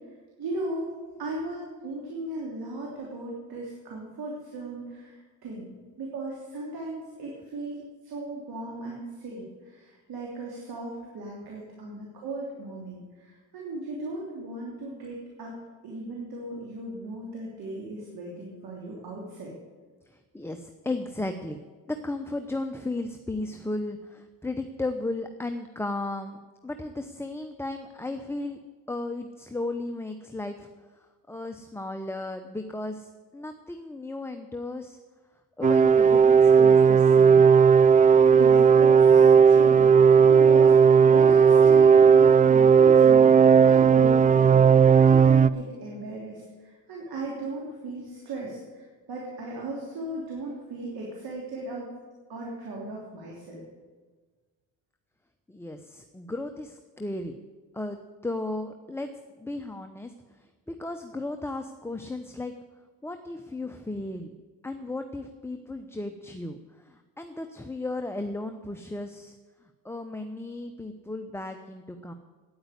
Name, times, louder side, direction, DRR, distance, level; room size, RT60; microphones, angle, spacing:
voice 1, 0.4-0.9 1.2-5.7 6.0-15.6 15.8-19.5 38.3-39.9 40.3-44.6 45.0-51.9 52.3-53.6, right 2 dB, 70° right, -3 dB, 3.2 m, -37 dB
voice 2, 20.3-21.6 21.9-26.4 26.6-28.6 28.9-30.7 31.3-35.0 35.6-37.5 55.5-57.4 57.7-59.1 59.4-60.1 60.7-62.5 63.0-64.3 64.6-66.6 66.8-69.3 69.8-72.1, left 2 dB, 5° left, 6 dB, 0.8 m, -35 dB
sound 1, 35.6-45.5, right 6 dB, 20° right, 0.3 m, -16 dB
9.4 x 8.8 x 9.6 m, 1.4 s
cardioid pair, 75°, 39 cm